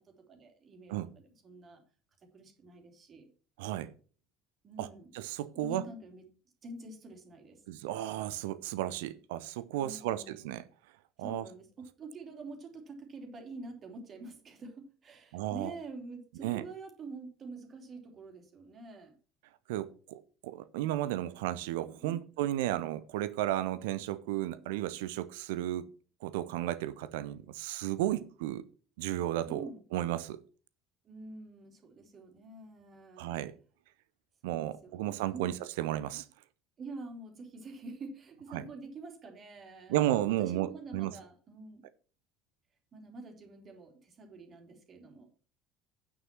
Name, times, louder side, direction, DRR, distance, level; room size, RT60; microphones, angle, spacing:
voice 1, 0.3-1.8 2.3-3.3 4.6-5.1 5.5-6.2 6.6-7.6 9.7-10.5 11.2-19.2 22.0-22.2 29.4-29.8 31.0-33.3 34.4-35.5 36.8-40.0 40.4-41.8 42.9-45.3, right 3 dB, 35° right, 2.9 m, -47 dB
voice 2, 3.6-3.9 4.8-4.9 5.1-5.8 7.7-10.6 11.2-11.5 15.3-15.7 16.4-16.6 19.7-25.9 26.2-28.6 29.0-29.6 29.9-30.4 33.2-33.5 34.4-36.3 38.5-38.6 39.9-41.2, right 13 dB, 65° right, 0.5 m, -33 dB
9.1 x 6.2 x 5.8 m
figure-of-eight pair, 65°, 0 cm